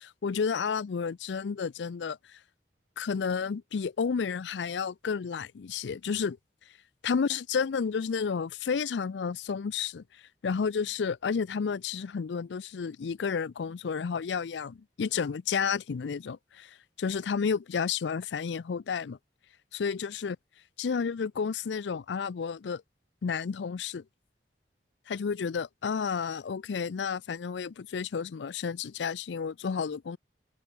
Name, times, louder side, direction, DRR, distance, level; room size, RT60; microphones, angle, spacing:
voice 1, 0.0-2.2 3.0-6.4 7.0-10.0 10.4-19.2 19.7-20.4 20.8-22.8 23.2-24.0 25.1-30.2, left 6 dB, 85° left, 0.4 m, -31 dB
open air
head